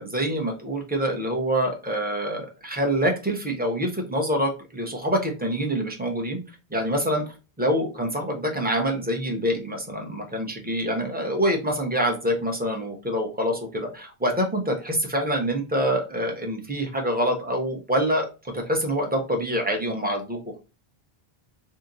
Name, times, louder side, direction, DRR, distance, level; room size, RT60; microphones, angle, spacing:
voice 1, 0.0-6.4 6.7-18.3 18.5-20.6, equal, 10° right, 2 dB, 0.7 m, -26 dB
2.8 x 2.5 x 3.7 m, 0.30 s
omnidirectional pair, 1.0 m